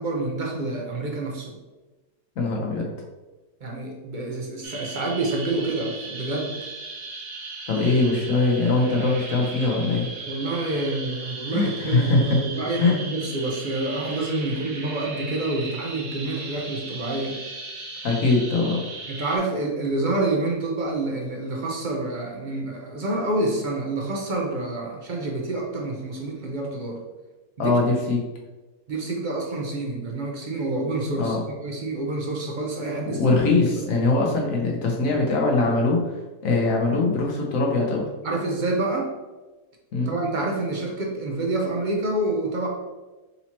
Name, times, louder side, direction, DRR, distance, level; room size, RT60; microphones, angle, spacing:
voice 1, 0.0-1.5 3.6-6.5 10.3-17.4 19.1-27.0 27.6-27.8 28.9-33.2 33.7-33.9 38.2-39.1 40.1-42.7, right 2 dB, 55° right, -1 dB, 0.5 m, -28 dB
voice 2, 2.4-2.9 7.7-10.1 11.5-12.4 12.8-13.0 18.0-18.8 27.6-28.2 31.2-31.4 33.1-36.0 36.4-38.0 39.9-40.1, left 3 dB, 60° left, -1 dB, 1.2 m, -22 dB
sound 1, 4.6-19.4, right 3 dB, 75° right, 1.5 m, -37 dB
4.1 x 2.8 x 4.2 m, 1.2 s
omnidirectional pair, 1.7 m